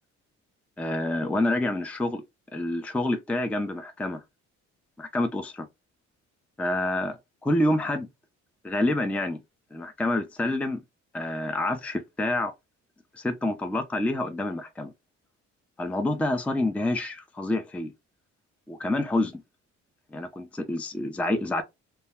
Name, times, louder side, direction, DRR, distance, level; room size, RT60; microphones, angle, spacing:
voice 1, 0.8-2.2 2.5-4.2 5.0-5.7 6.6-8.1 8.6-9.4 9.7-10.8 11.1-12.5 13.1-14.9 15.8-17.9 18.7-19.4 20.1-21.6, left 1 dB, 5° left, 0.4 m, -27 dB
2.1 x 2.1 x 3.4 m
cardioid pair, 90°, 30 cm